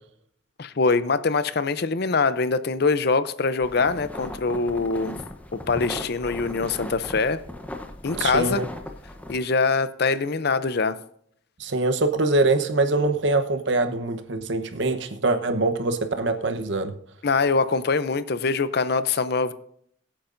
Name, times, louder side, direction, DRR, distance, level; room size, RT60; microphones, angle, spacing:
voice 1, 0.6-5.2 5.5-7.4 8.0-8.6 9.3-11.0 17.2-19.5, left 4 dB, 55° left, 13 dB, 0.6 m, -23 dB
sound 1, 3.6-9.4, left 1 dB, 10° left, 0.8 m, -37 dB
voice 2, 8.1-8.7 11.6-16.9, right 2 dB, 65° right, 7 dB, 1.0 m, -23 dB
22.0 x 8.6 x 2.6 m, 0.67 s
head